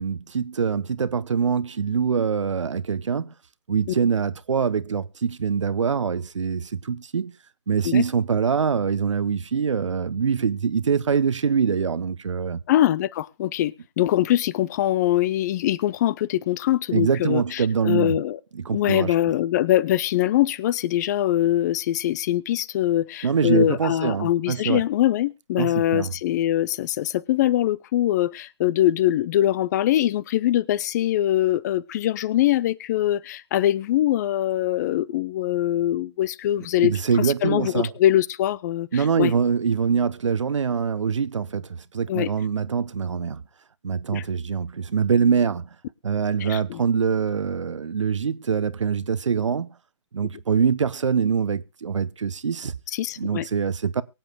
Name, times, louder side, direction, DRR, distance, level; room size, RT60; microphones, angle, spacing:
voice 1, 0.0-3.3 3.7-7.3 7.7-12.6 16.9-18.2 18.5-19.1 23.2-24.8 25.6-26.1 36.8-37.9 38.9-43.4 43.8-45.7 46.0-49.7 50.1-52.8 53.2-54.0, right 6 dB, 75° right, 0.9 m, -24 dB
voice 2, 12.7-18.4 18.7-36.9 37.2-39.3 42.1-42.3 44.1-44.2 46.4-46.8 52.9-53.5, left 13 dB, 35° left, 0.6 m, -23 dB
23.5 x 8.9 x 2.2 m
figure-of-eight pair, 135°, 16 cm